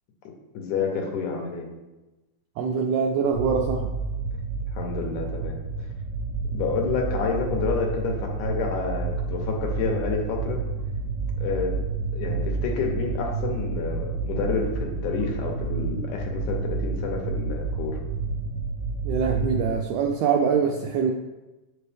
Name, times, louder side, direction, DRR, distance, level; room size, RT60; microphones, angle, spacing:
voice 1, 0.5-1.7 4.7-5.6 6.5-10.6 11.4-11.7 12.1-18.0, left 5 dB, 90° left, 1 dB, 2.5 m, -29 dB
voice 2, 2.6-3.9 19.0-21.1, right 6 dB, 85° right, 1 dB, 1.4 m, -24 dB
sound 1, 3.3-19.7, right 4 dB, 65° right, 0.9 m, -30 dB
7.3 x 5.4 x 3.4 m, 1.1 s
omnidirectional pair, 3.4 m